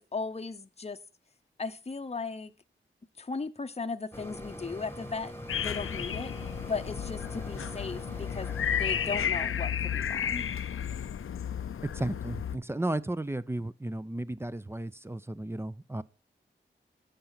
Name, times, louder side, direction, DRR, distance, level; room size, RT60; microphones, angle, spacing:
voice 1, 0.1-1.0 1.6-2.5 3.2-5.3 5.6-6.3 6.7-8.5 8.8-10.4, left 4 dB, 30° left, 0.7 m, -36 dB
sound 1, 4.1-9.3, equal, 10° left, 1.5 m, -42 dB
sound 2, 5.5-12.6, left 8 dB, 85° left, 0.5 m, -33 dB
voice 2, 11.9-16.0, right 1 dB, 10° right, 0.5 m, -34 dB
8.7 x 5.2 x 5.6 m
cardioid pair, 40°, 21 cm